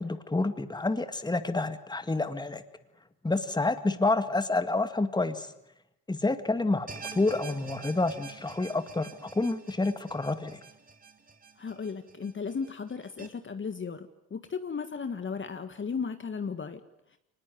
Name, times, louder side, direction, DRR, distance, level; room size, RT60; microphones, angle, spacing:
voice 1, 0.0-2.6 3.2-5.5 6.1-10.6, left 2 dB, 10° left, 10 dB, 2.0 m, -28 dB
sound 1, 6.9-13.3, right 5 dB, 20° right, 3.0 m, -47 dB
voice 2, 11.6-16.8, left 5 dB, 30° left, 9 dB, 1.7 m, -35 dB
24.0 x 20.0 x 9.5 m, 0.82 s
supercardioid pair, 75°, 38 cm